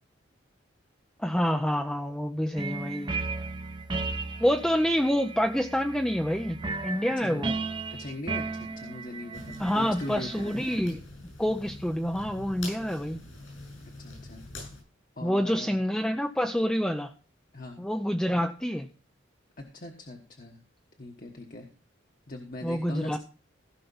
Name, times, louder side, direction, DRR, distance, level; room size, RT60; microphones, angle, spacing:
voice 1, 1.2-3.1 4.4-6.6 6.8-7.5 9.6-11.0 11.4-13.2 15.2-17.1 17.8-18.9 22.6-23.2, equal, 5° left, 5 dB, 0.5 m, -27 dB
sound 1, 2.6-10.8, right 3 dB, 25° right, 0.8 m, -35 dB
voice 2, 7.9-10.7 14.0-14.4 15.2-15.8 17.5-17.8 19.7-20.6 21.0-21.7 22.3-23.2, left 1 dB, 45° left, 1 dB, 1.3 m, -40 dB
sound 2, 9.3-14.8, left 2 dB, 80° left, 7.6 m, -44 dB
16.0 x 5.8 x 5.5 m, 0.36 s
head